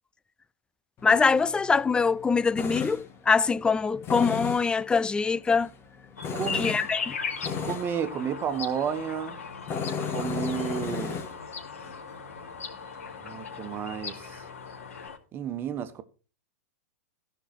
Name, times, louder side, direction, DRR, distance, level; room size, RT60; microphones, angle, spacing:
Tools, 1.0-15.1, left 6 dB, 35° left, 1.9 m, -38 dB
voice 1, 1.0-5.7 6.6-7.1, left 5 dB, 10° left, 0.4 m, -24 dB
sound 1, 6.2-15.2, left 5 dB, 85° left, 3.2 m, -38 dB
voice 2, 6.3-6.7 7.6-9.4 10.1-11.2 13.2-14.4 15.3-16.0, right 8 dB, 30° right, 1.4 m, -32 dB
16.0 x 6.0 x 4.4 m
hypercardioid pair, 105°, 8 cm